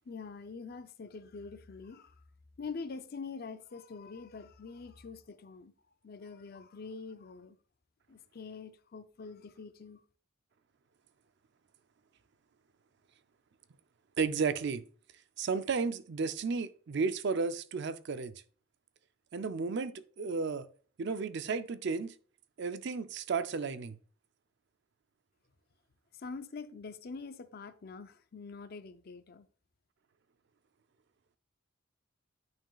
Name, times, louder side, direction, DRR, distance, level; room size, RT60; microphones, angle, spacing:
voice 1, 0.1-2.2 2.6-5.7 6.0-7.6 8.1-10.0 26.1-29.5, left 4 dB, 50° left, 0.5 m, -45 dB
voice 2, 14.2-14.8 15.4-18.3 19.3-20.7 21.0-22.1 22.6-24.0, right 4 dB, 55° right, 0.4 m, -33 dB
9.0 x 6.0 x 2.3 m
head